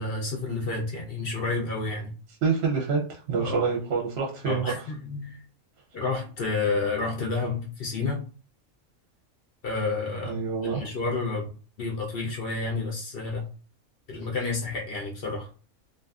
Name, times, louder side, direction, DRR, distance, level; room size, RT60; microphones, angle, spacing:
voice 1, 0.0-2.1 3.4-3.7 4.5-5.4 5.9-8.2 9.6-10.4 10.6-11.5 11.8-13.4 14.1-15.5, left 3 dB, 60° left, -1 dB, 0.6 m, -30 dB
voice 2, 2.4-4.8 10.3-10.9, right 5 dB, 60° right, -1 dB, 0.8 m, -27 dB
2.4 x 2.4 x 2.3 m, 0.38 s
omnidirectional pair, 1.4 m